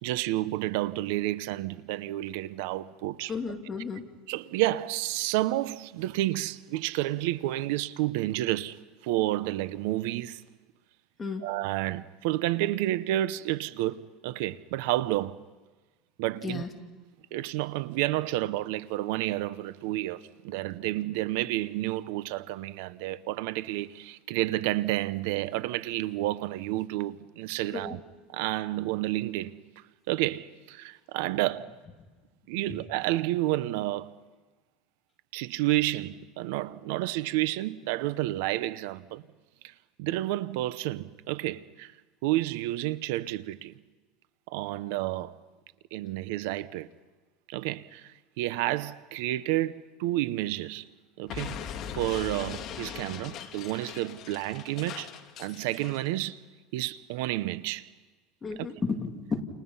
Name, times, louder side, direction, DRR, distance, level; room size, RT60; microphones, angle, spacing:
voice 1, 0.0-3.3 4.3-10.4 11.4-15.4 16.2-16.7 17.3-28.0 28.3-29.6 30.1-31.7 32.5-34.1 35.3-39.2 39.6-39.7 40.0-41.9 42.2-43.7 44.5-45.4 45.9-46.9 47.5-50.9 51.2-51.6 51.9-55.1 55.4-56.4 56.7-57.9 58.6-58.7, right 16 dB, 75° right, 0.8 m, -30 dB
voice 2, 3.3-4.0 11.2-11.4 16.4-16.7 27.7-27.9 58.4-59.4, left 4 dB, 20° left, 2.6 m, -33 dB
Explosion, 51.3-56.1, left 8 dB, 40° left, 2.0 m, -40 dB
29.5 x 29.5 x 5.6 m
cardioid pair, 160°, 0 cm